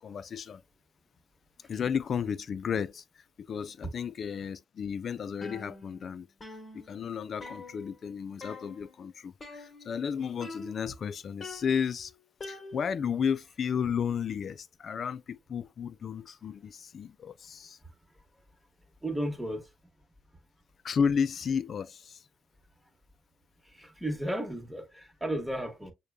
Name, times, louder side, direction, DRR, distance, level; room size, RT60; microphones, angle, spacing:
voice 1, 0.0-0.6 1.7-3.0 3.5-6.3 6.7-12.1 12.5-17.8 20.8-22.2, left 7 dB, 55° left, 0.4 m, -33 dB
sound 1, 5.4-6.1 6.4-8.1 8.4-9.0 9.4-10.1 10.4-11.0 11.4-13.1, left 3 dB, 35° left, 1.3 m, -45 dB
voice 2, 19.0-19.7 23.6-25.9, right 1 dB, 5° right, 1.3 m, -34 dB
6.5 x 2.3 x 2.2 m
cardioid pair, 80°, 0 cm